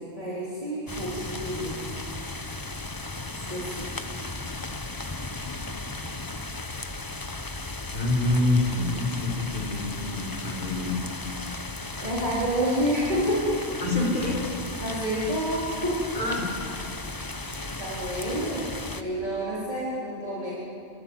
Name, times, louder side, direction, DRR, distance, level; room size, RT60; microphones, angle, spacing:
voice 1, 0.0-2.0 2.3-2.4 3.3-4.0 12.0-13.6 14.8-16.0 17.8-18.7 19.0-20.5, equal, 35° right, -8 dB, 4.5 m, -29 dB
sound 1, 0.9-19.0, left 2 dB, 20° left, 0.9 m, -36 dB
voice 2, 7.9-11.1 13.8-14.4 16.1-16.5 17.4-17.5, left 2 dB, 40° left, -2 dB, 4.5 m, -26 dB
25.0 x 15.0 x 9.7 m, 2.7 s
omnidirectional pair, 1.2 m